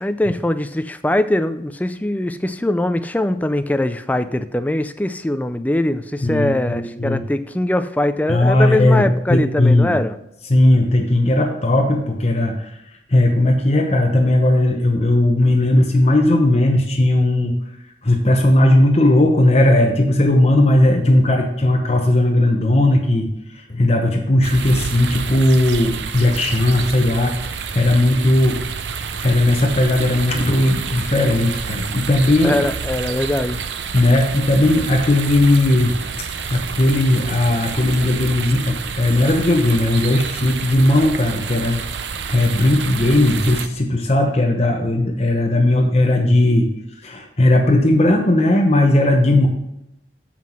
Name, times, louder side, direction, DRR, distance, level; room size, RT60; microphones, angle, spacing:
voice 1, 0.0-10.2 32.4-33.6, left 1 dB, 10° left, 11 dB, 0.3 m, -21 dB
voice 2, 6.2-7.2 8.3-9.0 9.3-9.9 10.5-12.8 13.1-17.5 18.0-28.6 29.2-32.6 33.9-36.0 36.5-41.8 42.3-46.7 47.0-49.5, left 1 dB, 35° left, 2 dB, 0.8 m, -17 dB
sound 1, 24.4-43.7, right 6 dB, 85° right, 0.6 m, -29 dB
7.4 x 5.6 x 6.1 m, 0.84 s
head